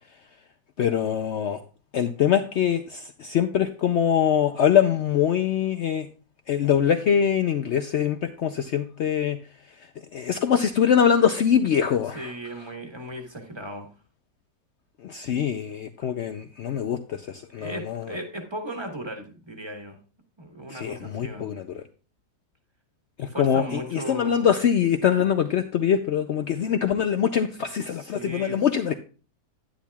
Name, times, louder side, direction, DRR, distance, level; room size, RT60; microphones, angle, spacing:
voice 1, 0.8-1.6 1.9-6.1 6.5-9.4 10.1-12.3 15.0-18.0 20.7-21.8 23.2-28.9, left 8 dB, 80° left, 8 dB, 0.6 m, -23 dB
voice 2, 12.1-13.9 17.6-20.0 20.4-21.5 23.3-24.5 27.9-28.6, right 1 dB, 20° right, 4 dB, 1.2 m, -36 dB
10.0 x 10.0 x 2.3 m, 0.37 s
omnidirectional pair, 1.8 m